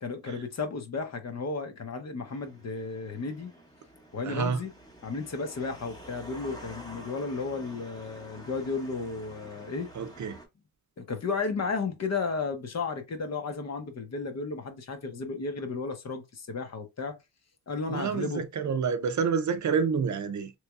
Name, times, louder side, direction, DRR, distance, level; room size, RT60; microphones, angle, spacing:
voice 1, 0.0-3.5 4.1-4.7 5.0-9.9 11.0-17.2 17.7-18.4, left 4 dB, 45° left, 0.8 m, -33 dB
sound 1, 2.3-10.5, equal, 10° left, 0.9 m, -48 dB
voice 2, 4.2-4.6 10.0-10.4 17.9-20.5, right 6 dB, 55° right, 0.6 m, -28 dB
4.0 x 3.1 x 2.3 m
wide cardioid pair, 175°, 35 cm